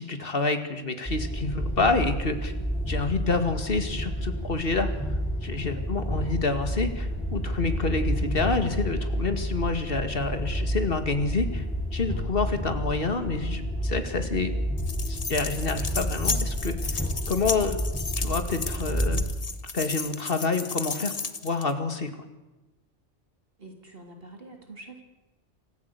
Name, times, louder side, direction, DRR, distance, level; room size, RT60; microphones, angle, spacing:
voice 1, 0.0-2.5 2.9-4.9 5.4-11.6 11.9-14.5 15.1-17.8 18.2-19.2 19.7-21.1 21.4-22.1, left 3 dB, 50° left, 8 dB, 2.3 m, -28 dB
sound 1, 1.1-19.2, equal, 5° left, 7.4 m, -30 dB
voice 2, 6.1-6.5 23.6-25.0, right 2 dB, 55° right, 3 dB, 3.4 m, -46 dB
sound 2, 14.8-21.7, left 4 dB, 35° left, 1.1 m, -34 dB
26.5 x 15.0 x 8.3 m, 1.1 s
omnidirectional pair, 1.2 m